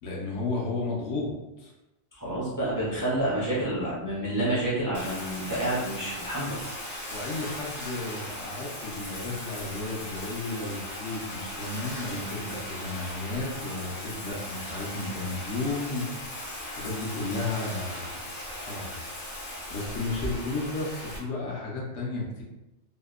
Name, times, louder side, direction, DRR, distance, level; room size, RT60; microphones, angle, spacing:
voice 1, 0.0-1.7 7.1-16.1 16.6-18.1 18.5-19.0 19.7-22.4, left 2 dB, 75° left, -3 dB, 1.0 m, -33 dB
voice 2, 2.1-6.6, right 1 dB, 30° right, -8 dB, 0.4 m, -29 dB
Bathtub (filling or washing), 4.9-21.2, left 1 dB, 50° left, 0.9 m, -38 dB
2.7 x 2.1 x 2.3 m, 1.0 s
omnidirectional pair, 1.3 m